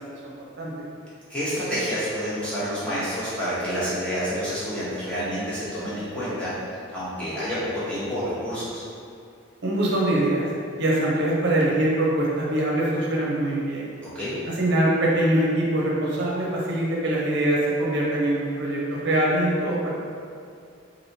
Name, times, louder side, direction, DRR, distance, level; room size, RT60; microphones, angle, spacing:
voice 1, 0.2-0.7 9.6-10.5 10.8-13.9 14.5-19.9, right 1 dB, 60° right, -4 dB, 0.7 m, -23 dB
voice 2, 1.3-6.5 6.9-8.8 14.1-14.4, equal, 5° left, -12 dB, 1.0 m, -28 dB
3.3 x 2.6 x 2.7 m, 2.3 s
head